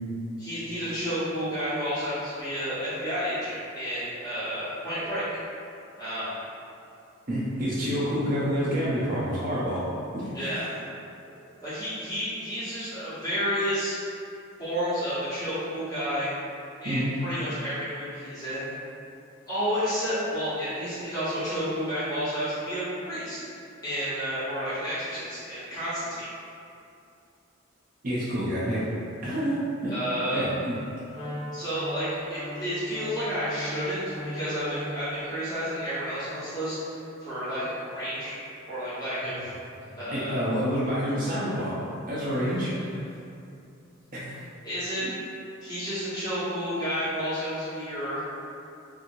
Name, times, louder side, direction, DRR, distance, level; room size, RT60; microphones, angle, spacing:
voice 1, 0.4-5.3 6.0-6.4 10.3-10.7 11.6-14.0 14.6-16.3 16.8-18.7 19.5-26.3 29.9-30.5 31.5-36.8 37.2-38.4 38.7-39.5 39.9-40.4 44.6-45.1 45.6-48.2, equal, 15° left, -14 dB, 1.1 m, -31 dB
voice 2, 7.3-9.8 10.1-10.6 16.8-17.1 28.0-28.9 29.2-29.9 30.3-30.8 40.1-41.7 42.1-42.7 44.1-44.4 45.0-45.2, equal, 40° right, -9 dB, 0.5 m, -28 dB
Wind instrument woodwind instrument, 31.1-35.2, equal, 85° left, 0.6 m, -38 dB
sound 1, 39.2-40.1 40.5-40.7 41.1-41.6 42.2-43.2 44.1-44.4, equal, 60° left, 1.1 m, -46 dB
2.8 x 2.6 x 2.6 m, 2.6 s
head